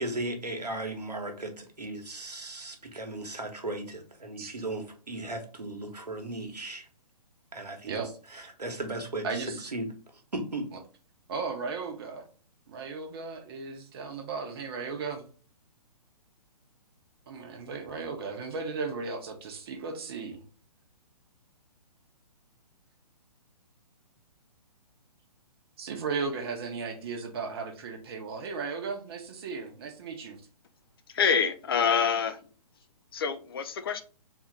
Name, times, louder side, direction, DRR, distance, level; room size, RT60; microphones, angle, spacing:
voice 1, 0.0-6.9 7.5-8.0 8.3-9.9 10.3-10.7, right 2 dB, 80° right, 1.1 m, -36 dB
voice 2, 9.2-9.7 11.3-12.2 12.7-15.2 17.3-20.4 25.8-30.4, right 4 dB, 40° right, 0.9 m, -36 dB
voice 3, 31.1-32.4 33.1-34.0, left 6 dB, 35° left, 0.4 m, -26 dB
3.5 x 2.5 x 4.6 m
figure-of-eight pair, 130°, 20 cm